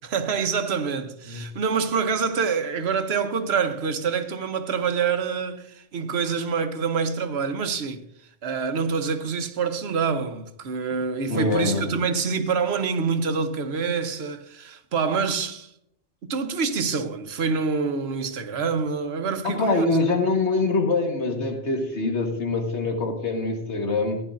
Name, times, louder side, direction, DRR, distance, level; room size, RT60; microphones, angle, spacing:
voice 1, 0.0-8.0 8.4-15.7 16.3-19.9, right 5 dB, 65° right, 1.1 m, -26 dB
voice 2, 11.3-11.8 19.4-24.2, left 3 dB, 75° left, 1.7 m, -24 dB
15.0 x 10.0 x 2.5 m
omnidirectional pair, 1.2 m